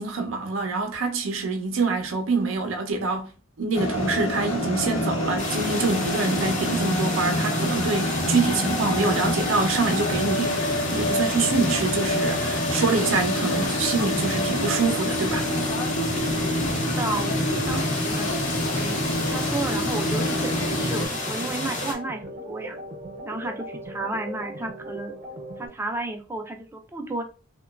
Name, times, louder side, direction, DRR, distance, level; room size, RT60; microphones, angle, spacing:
voice 1, 0.0-3.3 3.6-15.5, right 3 dB, 80° right, 0.5 m, -25 dB
sound 1, 3.7-21.1, left 1 dB, 85° left, 0.7 m, -27 dB
sound 2, 5.4-21.9, left 2 dB, 40° left, 0.7 m, -31 dB
voice 2, 16.7-18.4 18.7-19.0 19.3-22.8 23.2-25.1 25.6-27.2, right 2 dB, 10° right, 0.4 m, -32 dB
sound 3, 20.1-25.7, right 1 dB, 40° right, 0.7 m, -38 dB
2.9 x 2.2 x 2.3 m
head